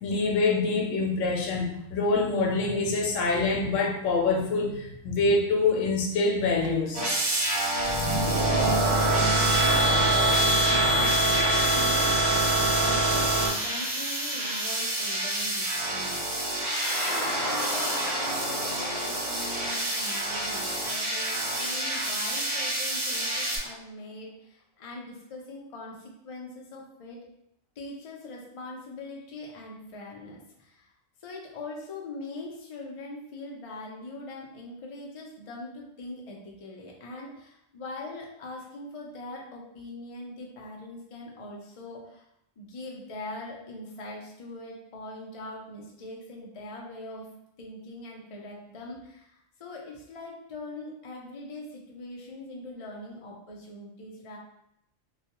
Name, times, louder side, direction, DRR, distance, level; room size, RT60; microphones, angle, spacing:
voice 1, 0.0-7.0, left 3 dB, 90° left, -1 dB, 0.9 m, -25 dB
sound 1, 6.9-23.6, right 1 dB, 65° right, 1.1 m, -29 dB
sound 2, 7.8-13.5, right 2 dB, 80° right, 0.9 m, -24 dB
voice 2, 8.5-27.2 27.8-30.9 31.2-42.3 42.6-47.3 47.6-54.4, left 2 dB, 50° left, -2 dB, 0.4 m, -42 dB
sound 3, 16.6-21.3, equal, 30° left, 1.0 m, -35 dB
2.3 x 2.2 x 2.8 m, 0.78 s
omnidirectional pair, 1.3 m